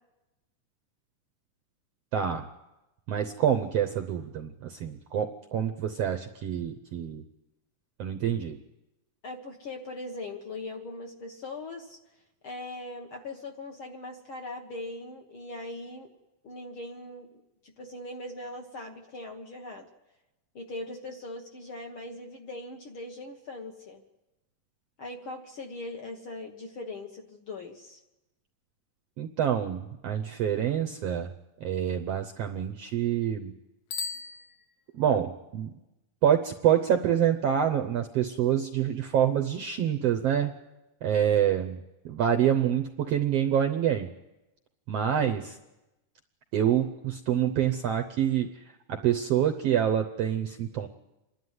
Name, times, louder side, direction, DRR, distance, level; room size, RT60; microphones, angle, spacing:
voice 1, 2.1-2.5 3.1-7.2 8.0-8.6 29.2-31.3 31.6-33.5 34.9-35.7 36.2-40.5 41.0-41.8 42.0-44.1 44.9-45.5 46.5-48.5 48.9-50.9, right 9 dB, 70° right, 5 dB, 1.5 m, -26 dB
voice 2, 9.2-12.0 12.4-16.1 16.4-17.3 17.6-19.9 20.5-24.0 25.0-28.0 45.2-45.3, left 2 dB, 50° left, 2 dB, 1.7 m, -40 dB
Bicycle bell, 33.9-35.2, left 5 dB, 80° left, 2.9 m, -38 dB
27.0 x 11.5 x 9.5 m, 0.98 s
omnidirectional pair, 3.8 m